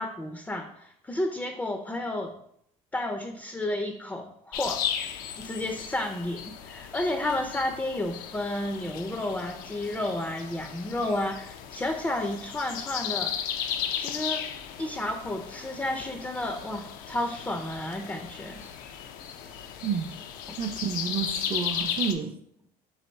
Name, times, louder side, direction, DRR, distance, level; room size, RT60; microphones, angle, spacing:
voice 1, 0.0-2.3 2.9-4.8 5.4-13.3 14.0-14.4 14.8-18.6 20.5-20.6, left 1 dB, 10° left, 5 dB, 0.4 m, -31 dB
sound 1, 4.5-22.1, left 9 dB, 75° left, 0.5 m, -36 dB
voice 2, 20.6-22.3, right 7 dB, 40° right, 4 dB, 0.5 m, -30 dB
4.1 x 2.9 x 4.4 m, 0.71 s
supercardioid pair, 95°, 15 cm